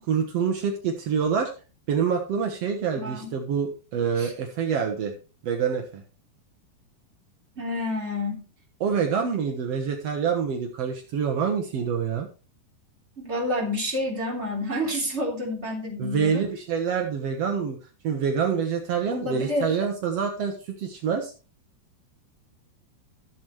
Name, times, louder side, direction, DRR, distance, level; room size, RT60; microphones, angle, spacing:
voice 1, 0.1-1.5 1.9-5.1 5.4-6.0 8.8-12.3 16.0-17.8 18.0-21.3, right 6 dB, 75° right, 3 dB, 1.4 m, -26 dB
voice 2, 2.9-3.3 4.2-4.3 7.6-8.4 13.2-16.4 19.1-19.8, left 1 dB, 15° right, -1 dB, 3.2 m, -29 dB
14.0 x 7.8 x 3.2 m, 0.33 s
omnidirectional pair, 4.7 m